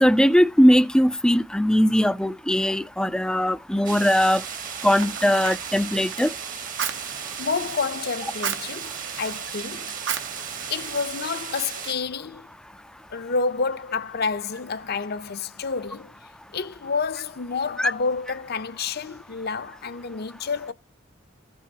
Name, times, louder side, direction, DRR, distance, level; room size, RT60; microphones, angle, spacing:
voice 1, 0.0-4.4 4.8-6.3 17.8-17.9, equal, 5° left, 0.4 m, -20 dB
sound 1, 3.8-11.9, right 7 dB, 45° right, 1.1 m, -35 dB
Fire, 4.4-11.6, right 8 dB, 65° right, 0.8 m, -36 dB
voice 2, 7.4-10.0 10.7-12.5 13.1-20.7, left 4 dB, 55° left, 0.7 m, -29 dB
15.5 x 5.5 x 2.8 m
head